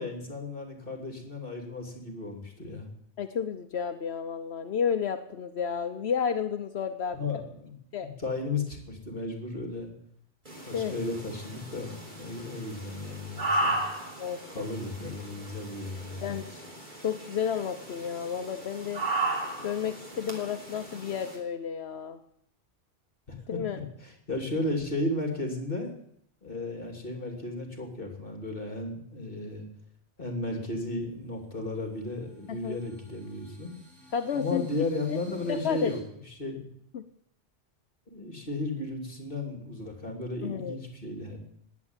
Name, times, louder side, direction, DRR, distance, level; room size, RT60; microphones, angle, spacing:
voice 1, 0.0-2.9 7.1-7.7 8.0-9.9 10.7-13.8 14.5-16.4 23.3-23.6 24.0-25.9 26.4-29.7 30.2-33.7 34.3-36.0 36.4-36.6 38.1-41.4, left 2 dB, 50° left, 4 dB, 3.1 m, -34 dB
voice 2, 3.2-7.2 7.9-8.1 10.7-10.9 14.2-14.7 16.2-16.6 17.0-19.0 19.6-22.2 23.5-23.8 32.5-32.8 34.1-34.7 35.1-35.2 35.5-35.9 36.9-37.0 40.4-40.8, left 7 dB, 70° left, 8 dB, 1.1 m, -31 dB
sound 1, 10.5-21.4, right 2 dB, 45° right, 3.3 m, -35 dB
sound 2, 31.1-36.0, equal, ahead, 6.4 m, -55 dB
19.0 x 8.1 x 9.0 m, 0.71 s
omnidirectional pair, 1.1 m